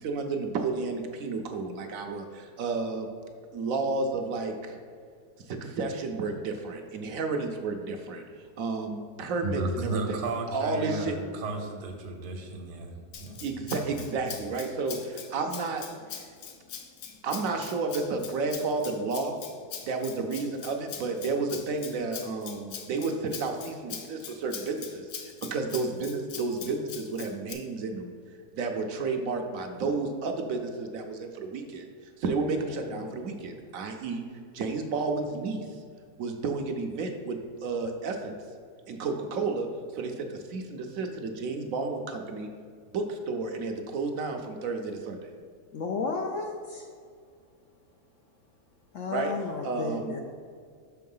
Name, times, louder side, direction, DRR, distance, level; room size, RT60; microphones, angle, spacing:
voice 1, 0.0-3.1 3.5-4.7 5.5-8.2 8.6-11.1 13.4-15.8 17.2-19.3 19.9-28.1 28.5-31.9 32.2-34.2 34.5-35.6 36.2-38.3 38.9-39.7 39.9-42.5 42.9-45.3 49.1-49.3 49.6-50.1, right 3 dB, 65° right, 4 dB, 1.0 m, -31 dB
voice 2, 9.4-13.4, right 2 dB, 80° right, 3 dB, 1.5 m, -33 dB
Rattle (instrument), 13.1-27.5, left 8 dB, 85° left, 1.3 m, -42 dB
voice 3, 45.7-46.8 48.9-50.2, left 4 dB, 70° left, 2 dB, 0.7 m, -33 dB
6.1 x 4.7 x 5.4 m, 2.1 s
omnidirectional pair, 1.8 m